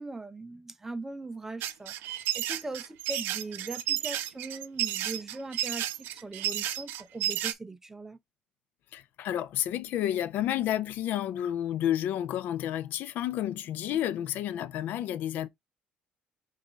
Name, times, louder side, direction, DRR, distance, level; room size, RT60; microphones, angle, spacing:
voice 1, 0.0-8.2, right 2 dB, 10° right, 0.5 m, -40 dB
sound 1, 1.6-7.5, right 12 dB, 80° right, 0.5 m, -32 dB
voice 2, 8.9-15.5, left 11 dB, 65° left, 0.4 m, -30 dB
5.5 x 2.5 x 3.4 m
cardioid pair, 130°, 3 cm